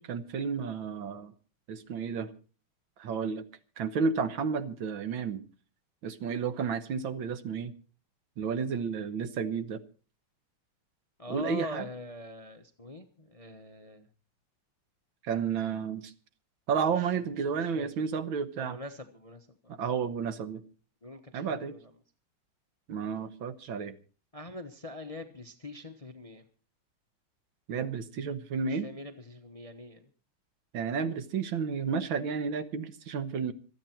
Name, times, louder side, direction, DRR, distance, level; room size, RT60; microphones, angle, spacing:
voice 1, 0.0-1.3 1.7-2.3 3.0-3.5 3.8-5.4 6.0-7.7 8.4-9.8 11.3-11.9 15.2-16.1 16.7-18.8 19.8-20.6 21.3-21.8 22.9-24.0 27.7-28.9 30.7-33.5, right 6 dB, 70° right, 11 dB, 1.8 m, -32 dB
voice 2, 11.2-14.1 16.9-17.1 17.6-17.9 18.6-19.8 21.0-21.9 24.3-26.4 28.6-30.1, left 2 dB, 25° left, 7 dB, 0.8 m, -44 dB
26.5 x 9.1 x 4.5 m, 0.38 s
omnidirectional pair, 2.3 m